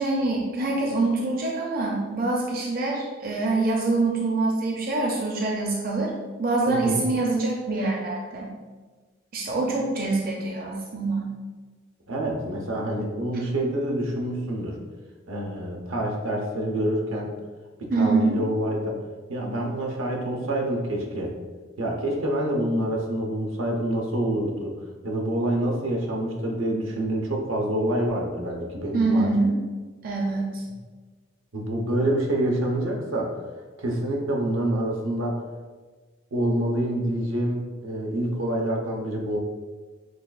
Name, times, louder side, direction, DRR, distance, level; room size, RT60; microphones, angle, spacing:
voice 1, 0.0-6.1 6.4-8.5 9.3-11.3 17.9-18.4 28.9-29.6 30.0-30.6, right 3 dB, 45° right, -2 dB, 0.5 m, -25 dB
voice 2, 6.7-7.1 12.1-14.8 15.3-17.3 17.8-18.9 19.3-21.3 21.8-24.7 25.0-29.3 31.5-33.4 33.8-35.4 36.3-39.4, right 1 dB, 85° right, 0 dB, 0.7 m, -27 dB
6.2 x 2.3 x 2.4 m, 1.4 s
head